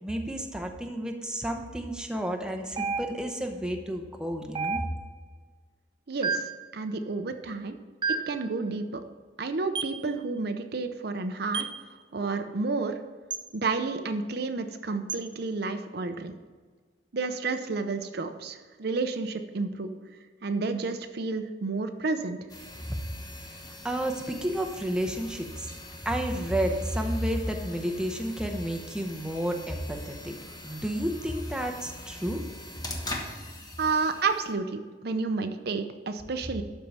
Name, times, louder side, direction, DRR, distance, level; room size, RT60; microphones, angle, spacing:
voice 1, 0.0-4.8 23.8-25.7 26.0-30.3 30.6-32.4, right 1 dB, 5° right, 2 dB, 0.8 m, -31 dB
sound 1, 2.8-3.4 4.6-5.2 6.2-6.7 8.0-8.4 9.8-10.0 11.5-11.8 13.3-13.5 15.1-15.3, right 5 dB, 25° right, 0.3 m, -31 dB
voice 2, 6.1-6.5 6.7-7.8 8.3-9.0 9.4-13.0 13.5-16.3 17.1-20.2 20.4-22.4 33.8-36.6, right 4 dB, 65° right, 8 dB, 0.7 m, -31 dB
sound 2, 22.5-34.5, left 2 dB, 20° left, 1.2 m, -43 dB
12.0 x 4.6 x 5.4 m, 1.5 s
head